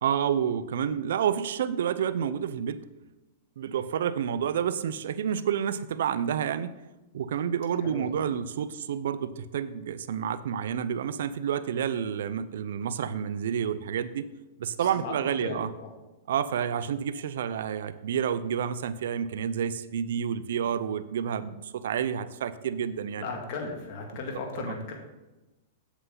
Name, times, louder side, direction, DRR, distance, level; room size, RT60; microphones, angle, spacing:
voice 1, 0.0-2.8 3.6-6.7 7.1-14.3 14.6-15.7 16.3-23.3 24.6-24.7, right 8 dB, 70° right, 14 dB, 0.5 m, -29 dB
voice 2, 7.8-8.2 14.8-15.1 15.4-15.9 23.2-24.9, left 4 dB, 50° left, 1 dB, 2.1 m, -36 dB
8.1 x 7.8 x 3.9 m, 1.1 s
hypercardioid pair, 120°, 0 cm